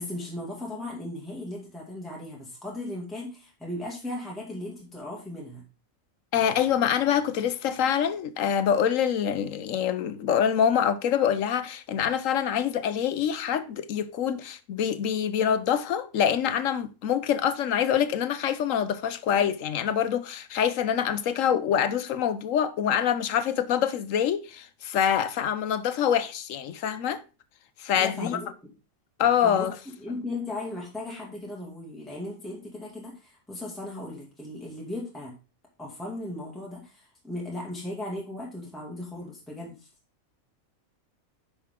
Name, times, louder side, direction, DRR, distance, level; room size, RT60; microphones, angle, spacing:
voice 1, 0.0-5.6 27.9-28.7 29.4-29.7 30.0-35.3 35.8-39.9, left 1 dB, ahead, 2.2 m, -37 dB
voice 2, 6.3-27.2 27.8-28.4 29.2-29.7, left 8 dB, 70° left, 1.0 m, -25 dB
10.5 x 5.7 x 3.6 m
omnidirectional pair, 1.5 m